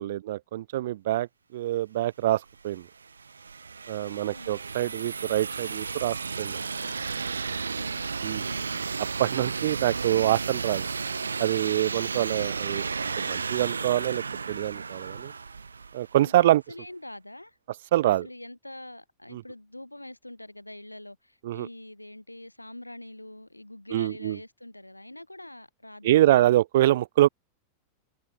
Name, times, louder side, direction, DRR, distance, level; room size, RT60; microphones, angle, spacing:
voice 1, 0.0-2.9 3.9-6.6 8.2-8.4 9.2-10.9 11.4-12.9 13.2-15.3 15.9-16.6 17.9-18.3 19.3-19.4 21.4-21.7 23.9-24.4 26.0-27.3, right 14 dB, 55° right, 1.0 m, -25 dB
sound 1, 2.5-16.3, right 5 dB, 75° right, 1.5 m, -33 dB
voice 2, 4.0-4.6 6.5-7.1 7.5-8.1 8.4-8.8 12.7-12.9 16.2-17.6 18.2-26.5, left 1 dB, 85° left, 2.5 m, -45 dB
figure-of-eight pair, 90°, 0 cm